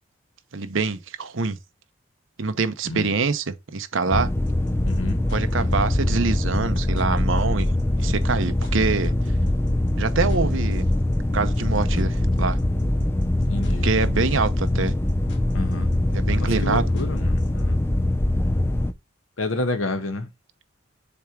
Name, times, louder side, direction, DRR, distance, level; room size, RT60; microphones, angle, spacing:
voice 1, 0.5-1.6 2.4-4.3 5.3-7.7 7.9-9.1 10.0-10.9 11.3-12.6 13.8-14.9 16.1-16.9, right 4 dB, 70° right, 0.8 m, -25 dB
sound 1, 4.1-18.9, left 1 dB, 10° left, 0.4 m, -23 dB
sound 2, 4.5-17.6, left 1 dB, 55° left, 1.7 m, -49 dB
voice 2, 4.8-5.2 13.5-13.9 15.5-15.9 16.3-17.8 19.4-20.3, left 2 dB, 75° left, 1.2 m, -29 dB
7.1 x 3.4 x 4.7 m
head